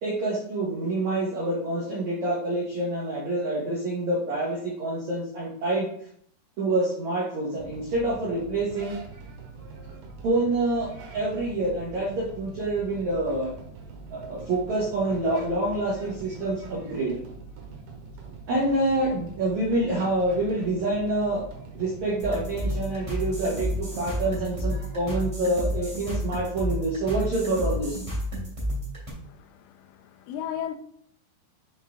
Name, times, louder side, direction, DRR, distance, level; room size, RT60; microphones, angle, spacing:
voice 1, 0.0-5.9 6.6-8.9 10.2-13.5 14.1-17.2 18.5-21.4 21.7-28.0, right 2 dB, 90° right, -5 dB, 1.6 m, -27 dB
sound 1, 7.6-24.6, right 3 dB, 70° right, 2.3 m, -43 dB
sound 2, 22.2-29.1, equal, 30° right, 0.6 m, -31 dB
voice 2, 29.2-30.8, left 9 dB, 85° left, 7 dB, 2.8 m, -36 dB
8.3 x 3.5 x 3.7 m, 0.64 s
omnidirectional pair, 5.3 m